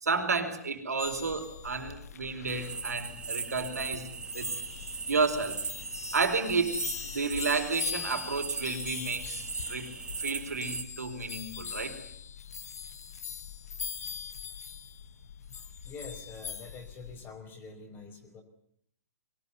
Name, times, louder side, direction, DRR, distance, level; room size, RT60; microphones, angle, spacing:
voice 1, 0.0-4.1 4.3-4.5 5.1-5.6 6.1-9.9 10.2-12.0, right 4 dB, 80° right, 7 dB, 4.6 m, -31 dB
sound 1, 1.0-17.3, left 8 dB, 70° left, 1.4 m, -42 dB
sound 2, 2.5-10.8, right 5 dB, 10° right, 1.2 m, -39 dB
voice 2, 15.8-18.4, left 4 dB, 25° left, 3 dB, 4.9 m, -46 dB
23.0 x 19.0 x 9.5 m, 0.67 s
figure-of-eight pair, 120°, 9 cm